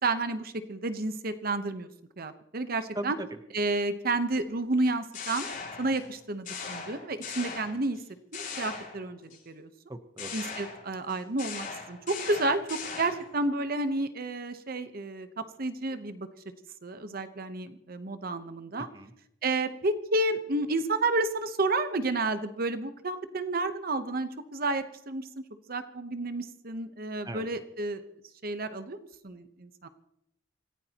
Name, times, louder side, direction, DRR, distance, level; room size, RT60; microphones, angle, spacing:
voice 1, 0.0-1.9 2.2-3.2 3.5-5.5 5.8-8.0 8.3-9.7 10.3-15.3 15.6-16.3 16.8-18.9 19.4-25.4 25.7-28.0 28.4-29.0 29.2-29.9, right 2 dB, 55° right, 10 dB, 1.0 m, -31 dB
voice 2, 2.9-3.3 9.9-10.3 18.9-19.1 27.2-27.5, right 1 dB, 20° right, 8 dB, 0.9 m, -37 dB
sound 1, 4.8-6.1 6.4-8.0 8.3-9.4 10.2-13.3, left 5 dB, 45° left, 7.5 m, -39 dB
27.0 x 15.5 x 3.0 m, 0.79 s
head